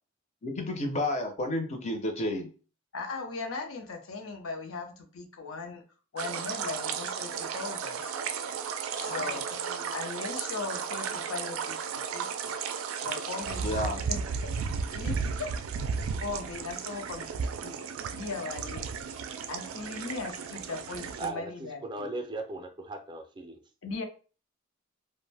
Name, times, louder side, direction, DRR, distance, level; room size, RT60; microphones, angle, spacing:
voice 1, 0.4-2.5 9.0-9.4 9.7-9.8 13.6-14.0, left 1 dB, 35° left, 5 dB, 0.6 m, -31 dB
voice 2, 2.9-5.8 6.1-8.1 8.9-9.4 9.9-12.5 13.0-14.2 14.9-15.5 16.2-17.8 18.1-19.0 19.5-22.1 23.8-24.0, left 4 dB, 85° left, 4 dB, 0.6 m, -38 dB
sound 1, 6.2-21.3, right 6 dB, 90° right, 0.3 m, -34 dB
voice 3, 21.2-23.6, right 2 dB, 25° right, 6 dB, 0.4 m, -38 dB
2.5 x 2.1 x 3.3 m, 0.36 s
head